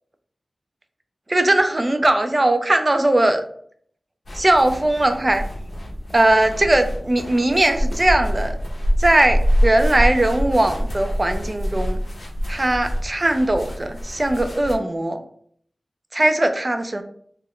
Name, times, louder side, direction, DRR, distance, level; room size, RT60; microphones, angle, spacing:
voice 1, 1.3-3.4 4.3-5.4 6.1-8.6 9.0-12.0 12.5-15.2 16.1-17.0, right 1 dB, 35° right, 7 dB, 0.3 m, -19 dB
sound 1, 4.3-14.8, equal, 65° left, 0.5 m, -25 dB
2.3 x 2.1 x 3.5 m, 0.63 s
wide cardioid pair, 55°, 0 cm